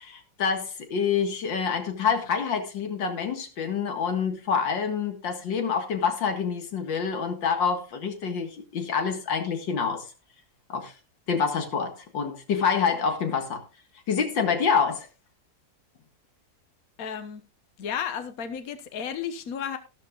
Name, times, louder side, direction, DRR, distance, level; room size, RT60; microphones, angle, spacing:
voice 1, 0.0-10.1 10.7-10.9 11.3-13.6 14.1-15.1, left 6 dB, 90° left, 2.5 m, -27 dB
voice 2, 17.0-17.4 17.8-19.8, left 8 dB, 55° left, 1.6 m, -33 dB
14.0 x 12.5 x 2.5 m
omnidirectional pair, 2.0 m